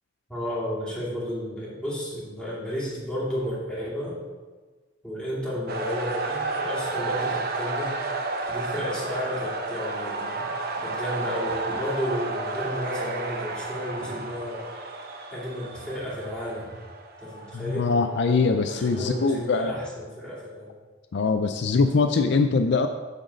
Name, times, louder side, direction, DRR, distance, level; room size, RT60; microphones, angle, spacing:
voice 1, 0.3-4.2 5.0-7.9 8.5-10.5 10.8-14.7 15.3-16.7 17.2-17.9 18.6-20.7, equal, 5° left, -8 dB, 2.4 m, -32 dB
sound 1, 5.7-19.5, right 3 dB, 50° right, 0.8 m, -32 dB
voice 2, 17.5-19.7 21.1-22.9, left 4 dB, 60° left, 7 dB, 0.4 m, -22 dB
8.8 x 3.9 x 6.3 m, 1.4 s
head